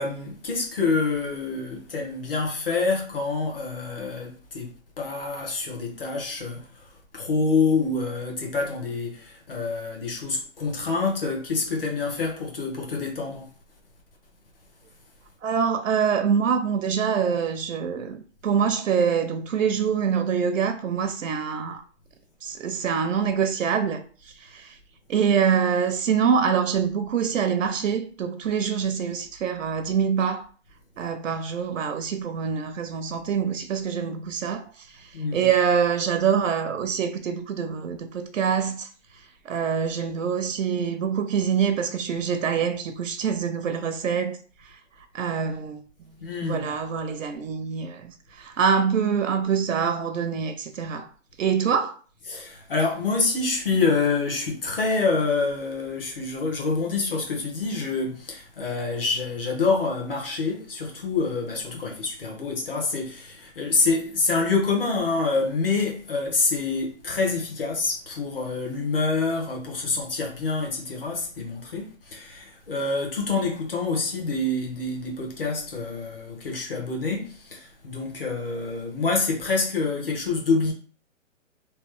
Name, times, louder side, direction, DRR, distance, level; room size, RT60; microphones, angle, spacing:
voice 1, 0.0-4.7 5.0-6.9 7.1-13.5 35.1-35.5 46.2-46.7 52.3-80.7, left 4 dB, 45° left, 1.0 m, -27 dB
voice 2, 15.4-21.8 22.4-24.8 25.1-30.5 31.0-38.9 39.4-44.8 45.1-45.8 46.4-51.1 51.4-51.9, right 7 dB, 75° right, 0.5 m, -25 dB
3.0 x 2.1 x 3.1 m
hypercardioid pair, 175°, 39 cm